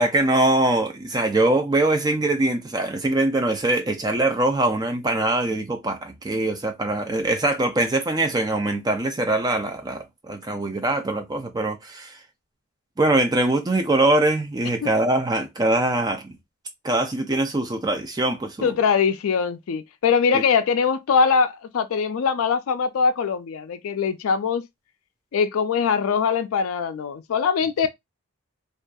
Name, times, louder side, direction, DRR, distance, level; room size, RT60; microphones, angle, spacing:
voice 1, 0.0-12.2 13.0-16.4 16.8-18.7 20.3-20.4, right 2 dB, 20° right, 0.4 m, -22 dB
voice 2, 18.6-24.6 25.3-27.9, left 6 dB, 75° left, 0.4 m, -22 dB
2.6 x 2.4 x 2.2 m
head